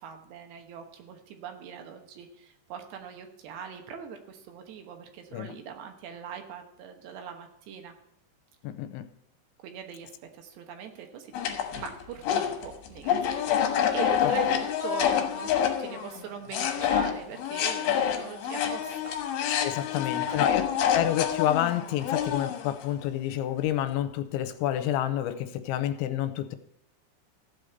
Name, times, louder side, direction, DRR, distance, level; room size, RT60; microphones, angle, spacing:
voice 1, 0.0-7.9 9.6-13.6 13.9-19.1 19.9-20.7, right 7 dB, 70° right, 5 dB, 3.1 m, -41 dB
voice 2, 8.6-9.1 14.2-14.3 19.6-20.6 20.9-26.6, left 12 dB, 85° left, 10 dB, 3.0 m, -29 dB
sound 1, 11.3-16.2 16.5-22.8, left 9 dB, 65° left, 2.8 m, -27 dB
15.0 x 5.1 x 8.0 m, 0.76 s
omnidirectional pair, 5.4 m